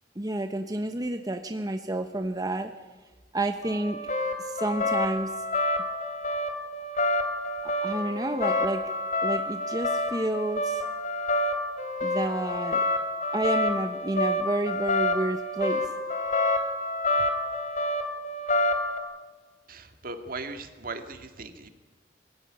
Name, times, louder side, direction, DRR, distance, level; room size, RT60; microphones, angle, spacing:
voice 1, 0.2-2.7 3.3-4.0 4.4-5.3 7.6-8.8 9.2-10.9 12.0-12.8 13.3-15.8, right 1 dB, 20° right, 6 dB, 1.1 m, -30 dB
sound 1, 3.6-19.0, left 1 dB, 45° left, 3.1 m, -28 dB
voice 2, 19.7-21.7, right 3 dB, 55° right, 7 dB, 2.0 m, -38 dB
22.5 x 16.0 x 9.9 m, 1.3 s
head